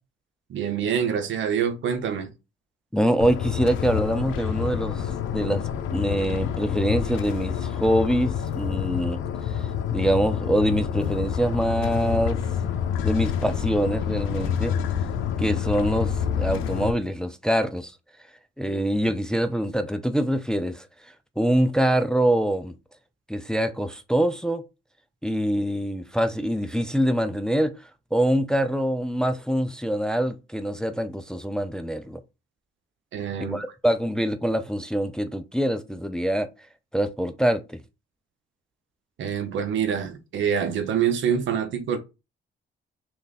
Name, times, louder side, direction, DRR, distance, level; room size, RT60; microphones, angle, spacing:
voice 1, 0.5-2.3 18.7-18.8 33.1-33.6 39.2-42.0, right 8 dB, 70° right, 0.8 m, -26 dB
voice 2, 2.9-5.6 5.9-9.2 9.9-12.4 13.0-14.7 15.4-17.9 18.6-20.9 21.4-22.7 23.3-24.6 25.2-27.7 28.1-32.2 33.4-36.5 36.9-37.8, equal, 5° left, 0.4 m, -24 dB
sound 1, 3.2-16.9, left 8 dB, 85° left, 0.5 m, -28 dB
3.2 x 2.4 x 4.0 m
cardioid pair, 90°, 20 cm